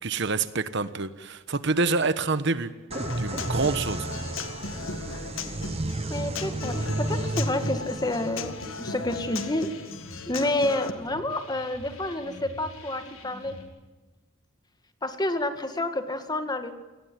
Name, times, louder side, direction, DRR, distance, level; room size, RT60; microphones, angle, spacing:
voice 1, 0.0-2.7 3.2-4.1, right 3 dB, 60° right, 13 dB, 1.2 m, -27 dB
Human voice / Acoustic guitar, 2.9-10.9, left 5 dB, 75° left, 1.8 m, -37 dB
sound 1, 2.9-10.5, right 2 dB, 30° right, 0.9 m, -33 dB
voice 2, 6.1-9.7 10.3-13.6 15.0-16.7, left 1 dB, 20° left, 8 dB, 2.0 m, -29 dB
sound 2, 8.4-13.6, left 2 dB, 90° left, 5.5 m, -46 dB
28.5 x 19.0 x 9.4 m, 1.2 s
head